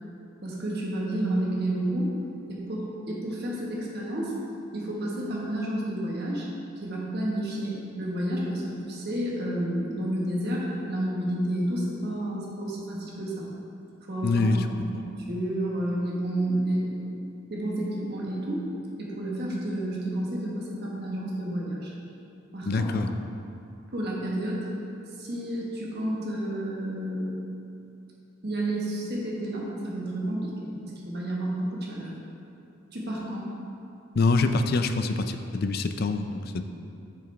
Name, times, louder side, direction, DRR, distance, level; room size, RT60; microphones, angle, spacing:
voice 1, 0.4-2.1 2.5-4.3 4.7-6.5 6.8-13.5 14.1-14.9 15.3-17.1 17.5-18.7 19.0-21.9 22.5-22.9 23.9-24.7 25.2-27.3 28.4-32.1 32.9-33.5, right 1 dB, 50° right, -4 dB, 1.4 m, -30 dB
voice 2, 14.2-14.7 22.6-23.1 34.2-36.6, left 3 dB, 45° left, 8 dB, 0.4 m, -25 dB
8.5 x 6.8 x 3.4 m, 2.7 s
head